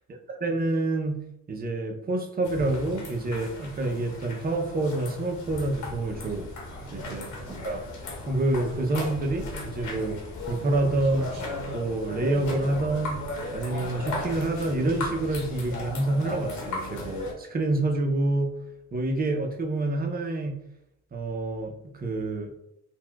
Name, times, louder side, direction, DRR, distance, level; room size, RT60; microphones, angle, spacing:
voice 1, 0.3-1.2 1.5-6.5 6.9-7.3 7.6-7.8 8.3-10.2 10.5-11.3 11.7-13.2 13.5-18.5 18.9-20.6 21.1-22.5, right 2 dB, 30° right, 3 dB, 0.6 m, -27 dB
sound 1, 2.4-17.3, left 2 dB, 75° left, 1.2 m, -37 dB
sound 2, 5.4-16.0, left 1 dB, 10° left, 0.6 m, -44 dB
sound 3, 10.9-12.0, equal, 65° right, 0.8 m, -46 dB
4.1 x 2.2 x 2.3 m, 0.80 s
cardioid pair, 90°, 30 cm